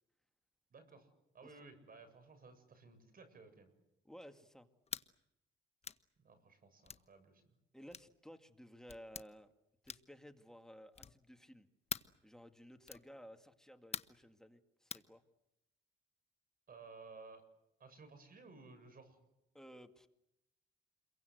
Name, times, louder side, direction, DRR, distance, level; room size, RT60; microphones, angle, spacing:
voice 1, 0.7-1.1 1.3-3.7 6.2-7.4 16.7-17.4 17.8-19.2, right 4 dB, 45° right, 9 dB, 7.6 m, -57 dB
voice 2, 4.1-4.7 7.7-9.5 9.8-11.7 12.2-15.2 19.5-20.1, equal, 5° left, 7 dB, 2.1 m, -56 dB
sound 1, 4.9-5.1 5.8-6.0 6.8-7.1 7.9-8.1 8.9-9.3 9.8-10.2 10.9-11.2 11.9-12.2 12.8-13.1 13.9-14.2 14.9-15.1, left 5 dB, 30° left, 1.1 m, -45 dB
28.5 x 23.0 x 8.0 m, 0.87 s
cardioid pair, 90°, 20 cm